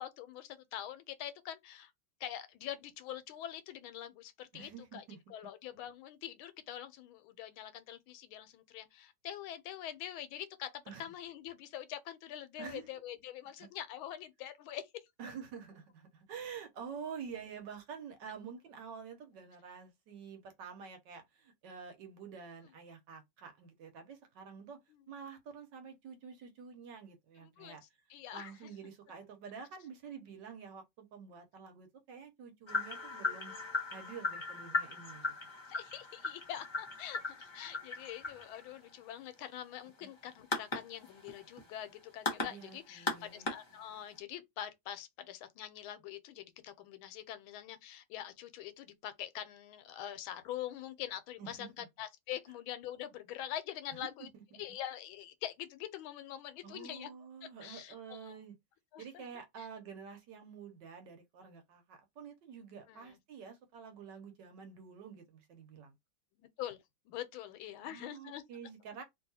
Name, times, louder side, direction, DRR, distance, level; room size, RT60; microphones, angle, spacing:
voice 1, 0.0-1.9 2.2-5.0 5.3-15.1 24.9-25.0 27.4-27.8 28.1-28.7 35.7-54.3 54.6-57.1 57.6-58.4 58.9-59.3 59.6-59.7 62.9-63.2 66.4-68.4, left 11 dB, 90° left, 1.4 m, -44 dB
voice 2, 4.5-5.2 10.9-11.1 12.6-12.8 13.6-13.7 15.2-24.8 25.1-27.8 28.3-33.5 33.9-35.3 40.0-40.1 42.4-43.5 51.4-51.9 54.0-54.1 54.3-54.6 56.6-58.6 59.0-65.9 67.8-69.0, right 6 dB, 65° right, 1.4 m, -48 dB
sound 1, 32.7-44.2, left 3 dB, 30° left, 0.5 m, -39 dB
3.0 x 2.8 x 2.7 m
omnidirectional pair, 2.2 m